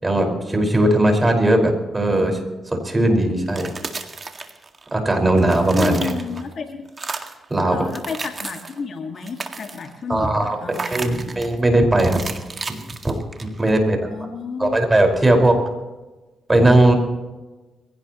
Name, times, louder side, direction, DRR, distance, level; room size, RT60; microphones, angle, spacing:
voice 1, 0.0-2.4 2.7-3.7 4.9-6.1 7.5-7.8 10.1-10.6 10.9-12.2 12.7-12.8 13.0-13.1 13.4-14.0 14.6-15.6 16.5-16.9, right 1 dB, 20° right, 3 dB, 5.1 m, -18 dB
sound 1, 3.4-5.0 5.3-6.5 6.9-7.4 7.8-8.8 9.1-10.0 10.7-11.5 12.0-13.7, right 4 dB, 35° right, 2.0 m, -33 dB
voice 2, 5.7-6.9 7.6-11.4 13.8-14.8, left 5 dB, 55° left, 4 dB, 2.0 m, -31 dB
22.5 x 17.0 x 3.1 m, 1.2 s
supercardioid pair, 65°, 0 cm